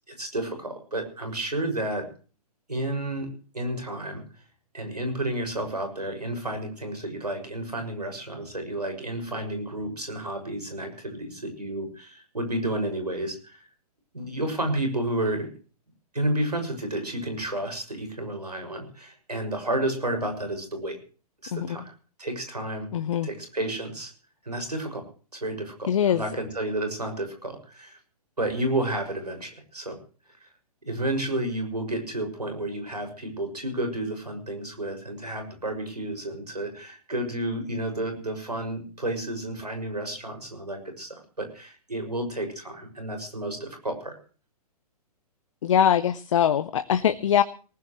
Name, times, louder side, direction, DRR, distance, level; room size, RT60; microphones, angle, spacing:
voice 1, 0.2-2.1 2.7-3.3 3.5-4.2 4.7-13.7 14.1-15.5 16.1-21.0 21.4-21.9 22.2-22.9 23.2-24.1 24.4-25.0 25.3-28.0 28.4-30.0 30.4-30.5 30.8-44.1, right 1 dB, 80° right, 5 dB, 6.2 m, -31 dB
voice 2, 22.9-23.3 25.9-26.2 45.6-47.4, left 9 dB, 50° left, 11 dB, 0.9 m, -22 dB
19.5 x 19.5 x 3.2 m, 0.39 s
figure-of-eight pair, 120°, 20 cm